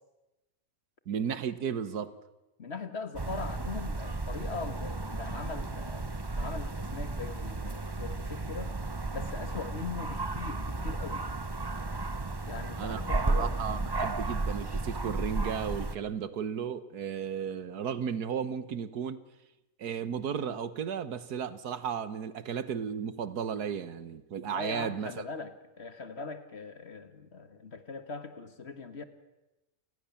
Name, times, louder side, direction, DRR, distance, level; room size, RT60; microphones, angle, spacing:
voice 1, 1.1-2.1 12.8-19.2 19.8-25.1, right 7 dB, 85° right, 1.8 m, -34 dB
voice 2, 2.6-8.7 9.1-11.3 12.4-13.7 24.5-29.0, left 4 dB, 45° left, 1.8 m, -41 dB
sound 1, 3.1-15.9, right 2 dB, 20° right, 0.7 m, -34 dB
28.5 x 19.5 x 7.1 m
omnidirectional pair, 1.6 m